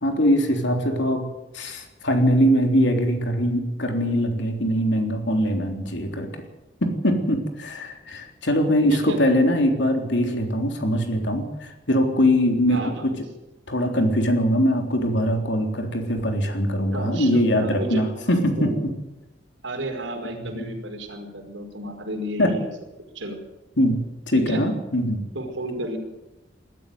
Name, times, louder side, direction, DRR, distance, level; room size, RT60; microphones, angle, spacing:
voice 1, 0.0-1.2 1.5-6.3 6.8-13.1 13.7-18.9 20.4-20.7 22.4-22.5 23.8-25.2, equal, 70° left, 4 dB, 3.6 m, -22 dB
voice 2, 8.9-9.2 12.7-13.0 16.9-18.8 19.6-22.7 23.1-23.4 24.3-24.6 25.3-26.0, right 1 dB, 80° right, 3 dB, 5.2 m, -32 dB
20.0 x 13.5 x 9.4 m, 1.0 s
head